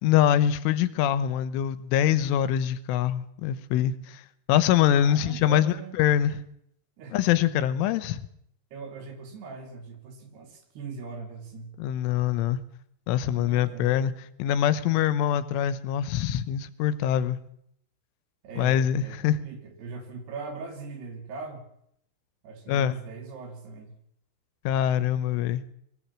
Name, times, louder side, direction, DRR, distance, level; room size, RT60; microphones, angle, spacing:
voice 1, 0.0-4.2 4.5-6.4 7.1-8.2 11.8-12.6 13.1-14.1 14.4-17.4 18.6-19.4 22.7-23.0 24.6-25.6, left 10 dB, 85° left, 15 dB, 3.4 m, -24 dB
voice 2, 5.0-5.9 7.0-7.2 8.7-11.7 13.3-13.9 18.4-21.6 22.4-24.0 25.3-25.6, right 4 dB, 60° right, 5 dB, 4.8 m, -40 dB
22.0 x 16.0 x 7.4 m, 0.73 s
omnidirectional pair, 5.6 m